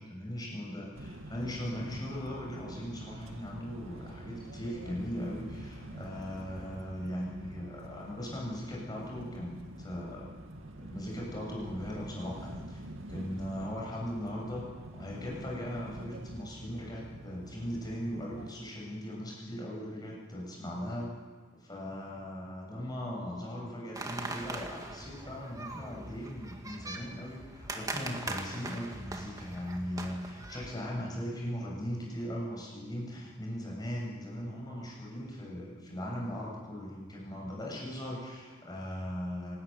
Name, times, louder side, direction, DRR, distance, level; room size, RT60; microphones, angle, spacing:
voice 1, 0.0-10.3 10.8-12.8 13.1-21.1 21.6-39.6, equal, 20° left, -2 dB, 7.1 m, -39 dB
sound 1, 0.9-18.5, right 1 dB, 80° right, 2.2 m, -46 dB
sound 2, 23.9-30.8, right 2 dB, 20° right, 1.9 m, -41 dB
26.5 x 13.5 x 9.3 m, 1.4 s
head